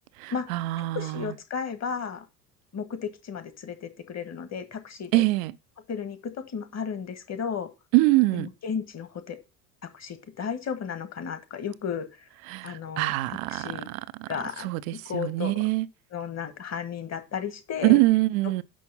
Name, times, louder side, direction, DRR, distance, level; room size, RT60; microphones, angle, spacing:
voice 1, 0.2-1.3 5.1-5.5 7.9-8.5 12.5-14.3 14.6-15.9 17.8-18.6, right 19 dB, 65° right, 0.6 m, -24 dB
voice 2, 0.9-2.2 2.7-5.2 5.9-7.7 8.3-9.4 9.9-12.3 12.6-13.9 14.3-14.7 15.0-15.6 16.1-18.0, left 7 dB, 35° left, 1.6 m, -34 dB
6.3 x 5.7 x 5.5 m
hypercardioid pair, 65°, 43 cm